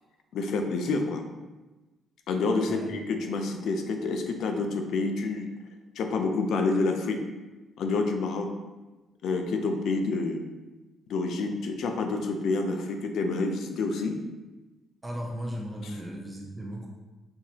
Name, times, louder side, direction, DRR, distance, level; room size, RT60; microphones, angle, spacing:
voice 1, 0.3-1.2 2.3-5.5 6.0-7.2 7.8-8.5 9.2-10.4 11.1-14.2, left 3 dB, 75° left, 5 dB, 0.5 m, -28 dB
voice 2, 15.0-16.9, equal, 15° right, -1 dB, 0.7 m, -36 dB
5.7 x 2.8 x 2.8 m, 1.2 s
cardioid pair, 90°, 0 cm